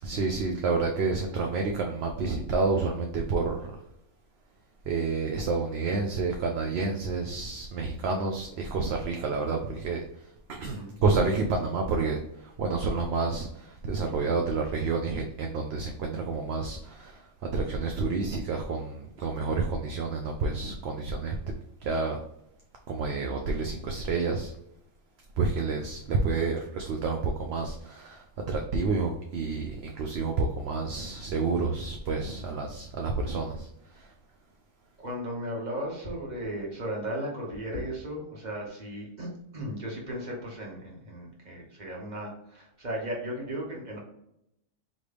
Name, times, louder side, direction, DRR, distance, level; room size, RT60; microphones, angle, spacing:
voice 1, 0.0-3.8 4.8-21.4 21.8-22.2 22.9-24.5 25.4-34.1, right 4 dB, 65° right, 2 dB, 0.8 m, -29 dB
voice 2, 35.0-44.0, equal, 40° right, -2 dB, 1.3 m, -36 dB
4.0 x 3.2 x 3.3 m, 0.80 s
omnidirectional pair, 1.2 m